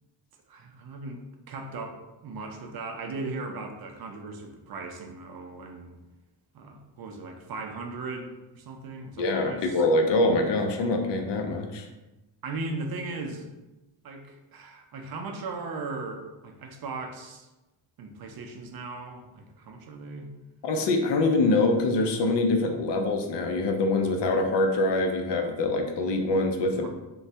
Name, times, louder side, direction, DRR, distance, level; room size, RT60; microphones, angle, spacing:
voice 1, 0.5-6.0 6.5-9.8 12.4-13.5 14.0-17.5 18.0-20.3 26.8-26.9, right 3 dB, 55° right, 4 dB, 0.5 m, -38 dB
voice 2, 9.2-11.9 20.6-26.9, left 2 dB, 70° left, 4 dB, 0.5 m, -24 dB
3.1 x 2.2 x 2.7 m, 1.0 s
wide cardioid pair, 130°, 45 cm